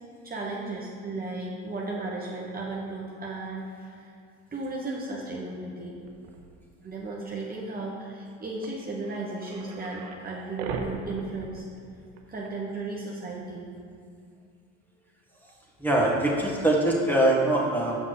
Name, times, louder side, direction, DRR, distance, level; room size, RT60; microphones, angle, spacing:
voice 1, 0.2-4.1 4.5-6.0 6.8-11.6 12.3-13.7, right 2 dB, 25° right, -4 dB, 1.1 m, -35 dB
sound 1, 6.0-6.5 7.8-7.9 8.2-8.3 8.6-10.2 10.6-12.2 12.4-12.5 13.3-13.4 15.5-15.6, right 5 dB, 85° right, 0.9 m, -38 dB
voice 2, 15.8-18.0, right 1 dB, 5° left, -3 dB, 1.7 m, -23 dB
6.6 x 5.8 x 4.8 m, 2.4 s
supercardioid pair, 80°, 35 cm